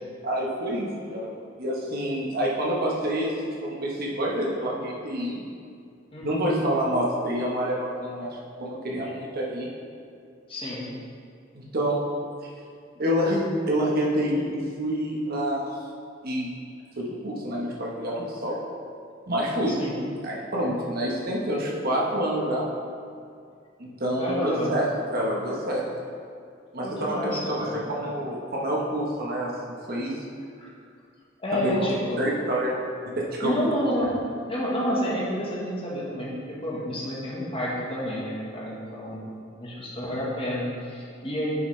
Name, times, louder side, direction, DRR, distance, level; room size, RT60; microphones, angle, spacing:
voice 1, 0.2-5.4 6.2-9.7 11.5-12.0 12.4-12.5 13.0-15.7 16.2-16.5 17.0-18.6 19.3-19.7 20.2-22.7 23.8-25.9 26.7-30.2 31.5-31.7 32.2-32.8 33.2-33.5, equal, 50° right, -3 dB, 1.2 m, -27 dB
voice 2, 6.1-6.5 10.5-10.9 19.7-19.9 24.2-24.7 26.8-27.8 30.6-30.7 31.4-32.2 33.4-34.1 34.5-39.3 39.6-41.5, equal, 30° left, -5 dB, 1.4 m, -29 dB
9.1 x 5.9 x 3.3 m, 2.3 s
head